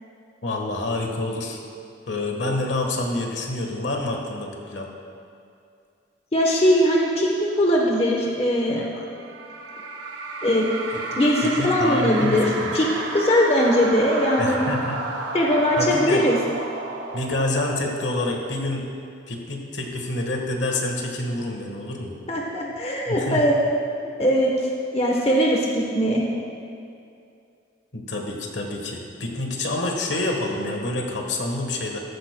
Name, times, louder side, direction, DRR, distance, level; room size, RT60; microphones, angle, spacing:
voice 1, 0.4-1.6 2.1-4.9 10.9-11.0 11.4-12.8 14.4-15.1 15.8-16.3 17.1-18.9 19.3-22.1 23.1-23.4 27.9-32.0, left 2 dB, 70° left, 2 dB, 1.3 m, -27 dB
voice 2, 6.3-8.9 10.4-10.7 11.2-12.5 12.7-12.8 13.1-14.7 15.3-16.4 22.3-23.5 24.0-24.5 24.9-26.2, equal, 30° left, -1 dB, 1.0 m, -20 dB
sound 1, 9.1-18.8, right 3 dB, 75° right, 1.0 m, -32 dB
15.0 x 12.5 x 2.2 m, 2.5 s
head